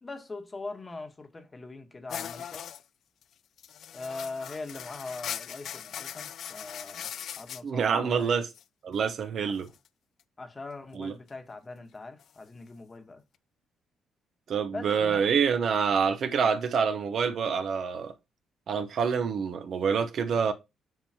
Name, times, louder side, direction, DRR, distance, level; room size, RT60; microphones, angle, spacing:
voice 1, 0.0-2.6 3.9-7.1 7.4-8.4 9.4-9.7 10.4-13.2 14.7-15.2, left 3 dB, 25° left, 1.3 m, -41 dB
sound 1, 2.1-2.8 3.2-3.3 3.6-7.6 8.5-8.6 9.7-9.9 12.2-12.3, left 9 dB, 65° left, 0.4 m, -40 dB
voice 2, 7.6-8.5 8.8-9.7 11.0-11.1 14.5-18.1 18.7-20.5, right 6 dB, 60° right, 0.9 m, -27 dB
7.6 x 5.5 x 2.9 m
cardioid pair, 90°, 0 cm